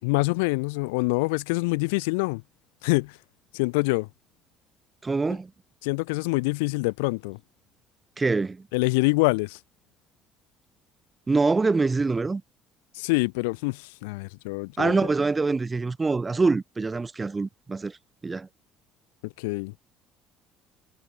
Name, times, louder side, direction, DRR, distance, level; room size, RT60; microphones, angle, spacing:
voice 1, 0.0-2.4 2.8-3.1 3.5-4.1 5.8-7.4 8.7-9.6 12.9-15.0 19.4-19.7, left 28 dB, 75° left, 0.6 m, -25 dB
voice 2, 5.0-5.5 8.2-8.6 11.3-12.4 14.8-18.0 18.2-18.5, right 3 dB, 25° right, 5.3 m, -24 dB
hypercardioid pair, 60°, 0 cm